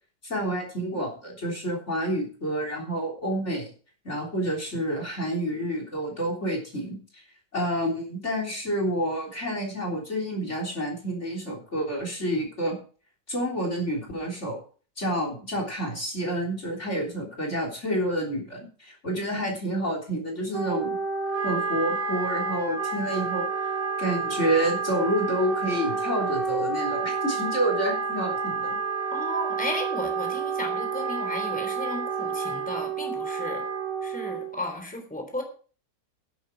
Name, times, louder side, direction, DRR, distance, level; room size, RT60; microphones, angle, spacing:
voice 1, 0.2-3.7 4.0-7.2 7.5-12.8 13.3-14.6 15.0-21.0 21.4-23.5 24.0-28.8, right 1 dB, 40° left, 1 dB, 3.9 m, -29 dB
Wind instrument woodwind instrument, 20.5-34.6, right 5 dB, 55° right, 4.0 m, -29 dB
voice 2, 29.1-33.6 34.0-35.4, left 1 dB, 5° left, 4 dB, 3.5 m, -34 dB
12.5 x 11.0 x 4.6 m, 0.40 s
omnidirectional pair, 1.8 m